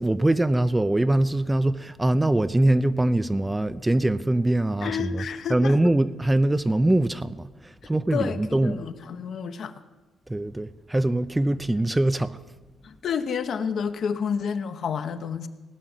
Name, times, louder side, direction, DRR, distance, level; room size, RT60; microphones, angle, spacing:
voice 1, 0.0-5.2 5.5-8.9 10.3-12.4, right 1 dB, 10° right, 0.5 m, -23 dB
voice 2, 4.8-5.8 8.1-9.7 12.8-15.5, left 6 dB, 60° left, 0.9 m, -29 dB
17.0 x 6.0 x 9.1 m
cardioid pair, 90°, 0 cm